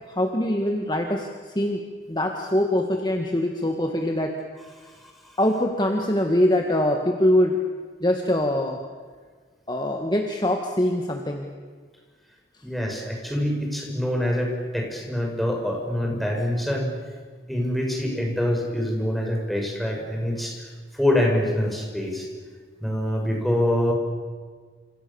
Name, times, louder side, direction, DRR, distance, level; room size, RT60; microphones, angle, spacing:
voice 1, 0.1-1.8 2.1-4.3 5.4-7.6 8.0-8.8 9.7-11.5, left 1 dB, 25° left, 3 dB, 1.9 m, -23 dB
voice 2, 12.6-16.9 17.5-20.7 20.9-22.3 22.8-23.9, left 1 dB, ahead, -1 dB, 6.2 m, -25 dB
28.5 x 27.5 x 7.2 m, 1.5 s
head